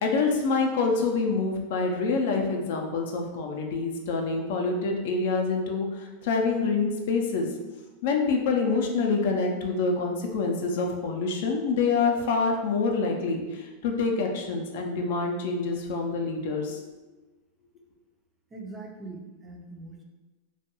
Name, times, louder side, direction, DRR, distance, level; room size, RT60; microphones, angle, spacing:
voice 1, 0.0-7.5 8.0-16.8, left 4 dB, 70° left, 2 dB, 0.4 m, -26 dB
voice 2, 18.5-20.0, right 3 dB, 20° right, 1 dB, 0.4 m, -42 dB
2.3 x 2.2 x 2.9 m, 1.2 s
hypercardioid pair, 125°, 0 cm